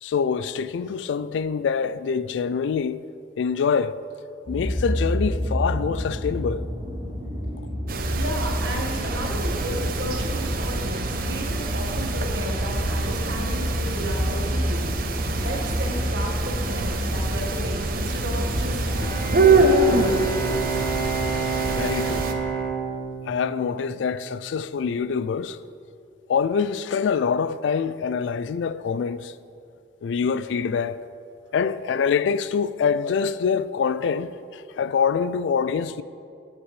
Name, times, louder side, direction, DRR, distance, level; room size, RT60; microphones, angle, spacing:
voice 1, 0.0-3.1 3.4-4.0 4.5-6.6 21.7-22.3 23.2-25.6 26.3-29.3 30.0-31.0 31.5-36.0, left 6 dB, 80° left, 0.3 m, -25 dB
sound 1, 4.5-19.5, equal, 35° right, 1.5 m, -29 dB
sound 2, 7.9-22.3, right 3 dB, 55° right, 0.6 m, -25 dB
voice 2, 8.1-14.9 15.4-19.1 19.4-20.8, equal, 85° right, 1.6 m, -34 dB
Bowed string instrument, 18.8-24.8, right 5 dB, 20° left, 2.0 m, -29 dB
15.0 x 6.0 x 3.2 m
head